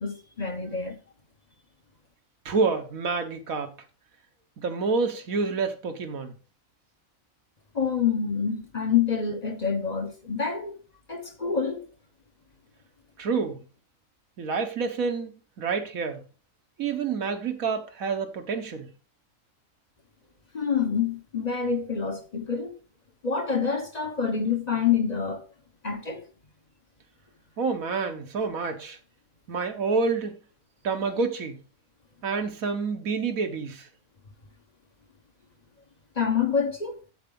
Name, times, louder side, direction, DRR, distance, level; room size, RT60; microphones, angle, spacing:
voice 1, 0.0-1.0 7.7-10.8 11.1-11.9 20.5-22.7 23.2-25.4 25.8-26.2 36.2-36.9, left 6 dB, 35° left, 1.1 m, -27 dB
voice 2, 2.4-3.7 4.6-6.3 13.2-13.6 14.4-16.2 16.8-18.9 27.6-29.0 29.5-30.4 30.8-31.6 32.2-33.9, right 4 dB, 80° right, 1.6 m, -28 dB
8.1 x 8.0 x 3.8 m
omnidirectional pair, 1.4 m